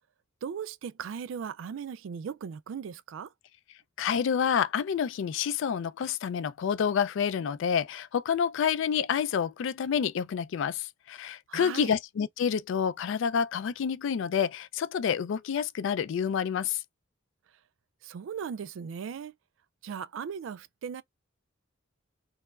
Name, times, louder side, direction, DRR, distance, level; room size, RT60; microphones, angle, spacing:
voice 1, 0.4-3.3 11.5-11.9 18.0-19.3 19.8-21.0, right 7 dB, 65° right, 0.3 m, -38 dB
voice 2, 4.0-16.8, left 7 dB, 65° left, 0.3 m, -28 dB
4.4 x 2.0 x 2.3 m
head